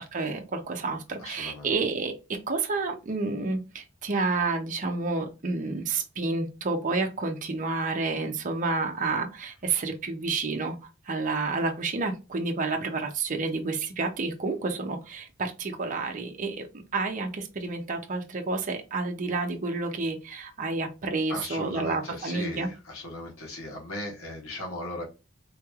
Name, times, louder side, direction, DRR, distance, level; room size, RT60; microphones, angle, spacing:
voice 1, 0.0-10.8 11.1-16.7 16.9-22.7, right 3 dB, 40° right, 3 dB, 0.6 m, -30 dB
voice 2, 1.2-1.7 21.3-25.0, left 1 dB, 85° left, -1 dB, 1.2 m, -37 dB
3.8 x 3.0 x 2.3 m, 0.28 s
head